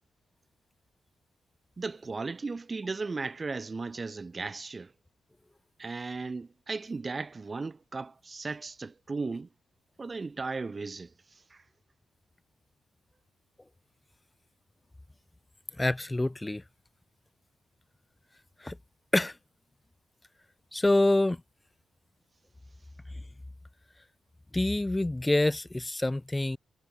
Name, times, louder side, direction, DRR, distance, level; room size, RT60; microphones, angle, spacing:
voice 1, 1.8-4.9 5.8-9.5 10.0-11.6, right 4 dB, 25° right, 0.7 m, -36 dB
voice 2, 15.8-16.6 18.6-18.8 19.1-19.4 20.7-21.4 24.5-26.6, left 2 dB, 10° left, 0.9 m, -26 dB
cardioid pair, 135°, 0 cm